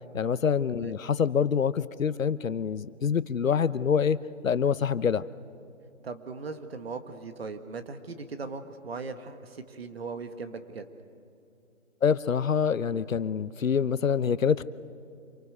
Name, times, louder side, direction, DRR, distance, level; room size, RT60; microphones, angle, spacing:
voice 1, 0.1-4.2 4.4-5.2 12.0-14.6, left 7 dB, 75° left, 16 dB, 0.9 m, -26 dB
voice 2, 6.0-10.9, right 4 dB, 50° right, 8 dB, 1.7 m, -39 dB
27.0 x 24.5 x 6.8 m, 2.7 s
hypercardioid pair, 165°, 40 cm